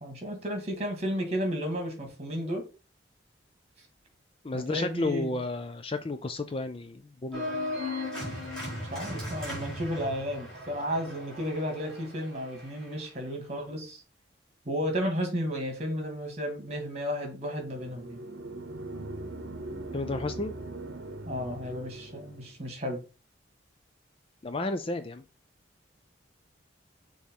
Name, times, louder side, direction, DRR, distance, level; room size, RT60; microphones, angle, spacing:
voice 1, 0.0-2.6 4.7-5.4 8.9-14.0 14.7-18.2 21.3-23.0, equal, 35° right, 2.1 m, -33 dB
voice 2, 4.4-7.6 19.9-20.5 24.4-25.2, left 2 dB, 30° left, 0.4 m, -32 dB
Organ, 7.3-13.0, left 1 dB, 5° left, 3.8 m, -37 dB
sound 1, 17.6-22.5, right 2 dB, 75° right, 0.8 m, -40 dB
6.4 x 3.1 x 5.4 m
head